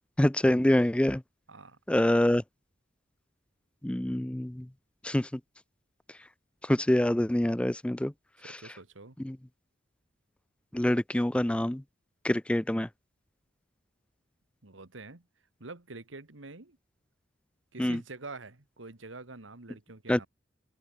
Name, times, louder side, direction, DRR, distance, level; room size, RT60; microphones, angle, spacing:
voice 1, 0.2-1.2 1.9-2.4 3.8-4.7 5.0-5.3 6.7-8.1 9.2-9.4 10.7-11.8 12.2-12.9 17.8-18.0 20.1-20.3, left 1 dB, 5° left, 0.4 m, -25 dB
voice 2, 1.5-1.8 8.4-9.2 14.6-15.3 15.6-16.8 17.7-20.3, right 3 dB, 85° right, 1.9 m, -46 dB
head